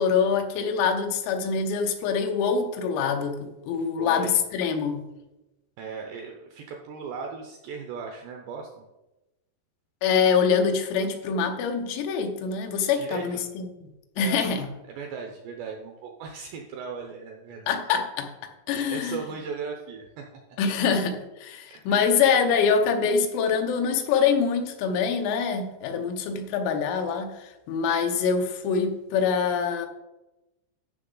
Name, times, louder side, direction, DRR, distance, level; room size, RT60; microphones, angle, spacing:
voice 1, 0.0-5.1 10.0-13.7 14.2-14.7 17.7-18.3 18.7-19.2 20.6-29.9, left 6 dB, 90° left, 5 dB, 3.7 m, -25 dB
voice 2, 3.8-4.3 5.8-8.8 13.0-13.4 14.2-17.7 18.7-20.6 21.7-22.2, right 5 dB, 80° right, 2 dB, 2.4 m, -38 dB
14.0 x 5.9 x 3.8 m, 1.0 s
omnidirectional pair, 5.9 m